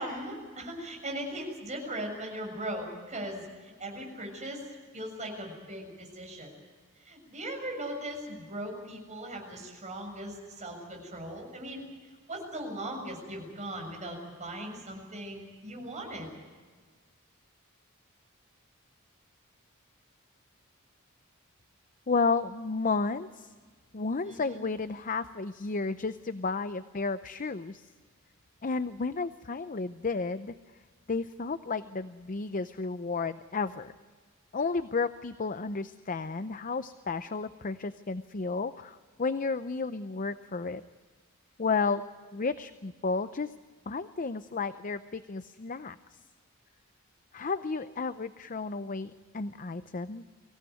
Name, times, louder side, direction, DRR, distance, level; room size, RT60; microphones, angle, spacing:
voice 1, 0.0-4.6 4.9-6.5 7.0-11.8 12.3-16.3 24.2-24.6, right 1 dB, 35° right, 1 dB, 6.9 m, -39 dB
voice 2, 22.1-23.5 23.9-27.9 28.6-30.6 31.1-33.9 34.5-40.8 41.6-42.0 42.3-43.5 43.9-46.0 47.3-50.3, left 4 dB, 40° left, 12 dB, 0.6 m, -32 dB
24.5 x 16.5 x 9.3 m, 1.5 s
head